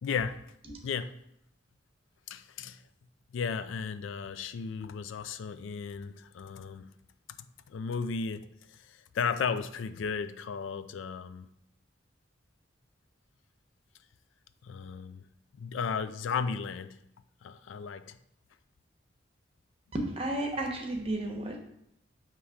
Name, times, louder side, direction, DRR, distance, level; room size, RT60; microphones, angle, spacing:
voice 1, 0.0-0.4 0.8-1.1 2.3-2.8 3.3-6.9 7.7-8.5 8.9-11.5 14.6-15.2 15.5-17.0 17.4-18.2, left 6 dB, 85° left, 0.4 m, -34 dB
voice 2, 19.9-21.6, right 1 dB, 30° right, 0.8 m, -32 dB
7.1 x 3.0 x 4.8 m
head